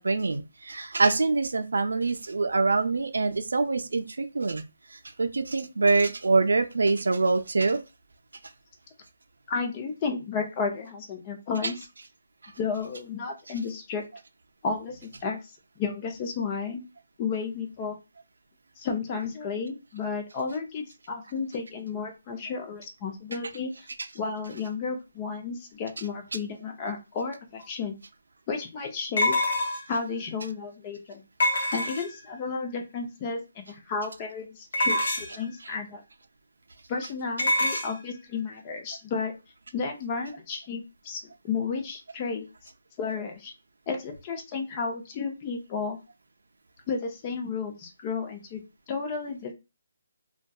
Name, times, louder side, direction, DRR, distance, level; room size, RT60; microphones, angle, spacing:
voice 1, 0.0-4.6 4.9-7.8 12.4-12.5, right 3 dB, 85° right, 7 dB, 0.4 m, -25 dB
voice 2, 9.5-11.8 12.6-14.0 14.6-16.8 17.2-18.0 18.8-23.7 24.1-27.9 28.5-29.3 29.9-31.2 31.7-36.0 36.9-39.3 39.7-42.5 43.0-43.5 43.9-46.0 46.9-48.6 48.9-49.5, left 5 dB, 25° left, 3 dB, 0.5 m, -32 dB
sound 1, 27.6-27.7 29.2-30.0 31.4-32.3 34.7-35.5 37.4-37.9, left 1 dB, 60° left, 0.8 m, -25 dB
2.6 x 2.2 x 2.3 m, 0.27 s
hypercardioid pair, 165°, 0 cm